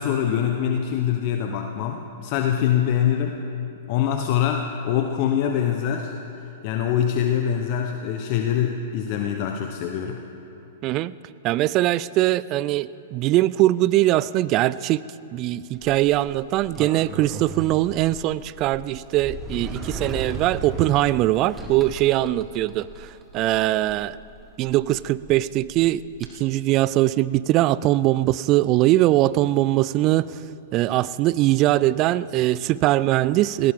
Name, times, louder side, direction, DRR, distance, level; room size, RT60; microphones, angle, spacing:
voice 1, 0.0-3.4 3.9-6.1 6.6-10.2, left 9 dB, 50° left, 4 dB, 0.9 m, -24 dB
voice 2, 10.8-11.2 11.4-15.0 15.3-23.1 23.3-24.2 24.6-30.4 30.7-33.7, right 15 dB, 40° right, 18 dB, 0.4 m, -21 dB
Sliding door, 15.7-26.3, right 2 dB, 15° right, 1.6 m, -38 dB
18.5 x 17.5 x 3.7 m, 2.7 s
hypercardioid pair, 115°, 0 cm